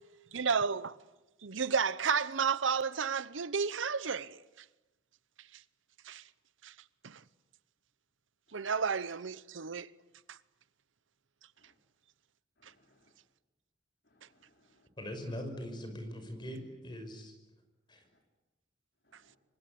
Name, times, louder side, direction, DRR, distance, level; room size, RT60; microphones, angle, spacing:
voice 1, 0.3-1.0 1.4-4.4 5.5-5.6 6.0-6.2 6.6-6.7 7.0-7.2 8.5-9.9 10.3-10.4 12.6-12.7, right 6 dB, 90° right, 0.9 m, -32 dB
voice 2, 12.6-13.1 14.0-14.9 19.0-19.4, left 1 dB, 60° left, 4.9 m, -70 dB
voice 3, 15.0-17.3 17.9-18.0, equal, 25° left, 5.9 m, -41 dB
27.5 x 24.5 x 8.6 m
head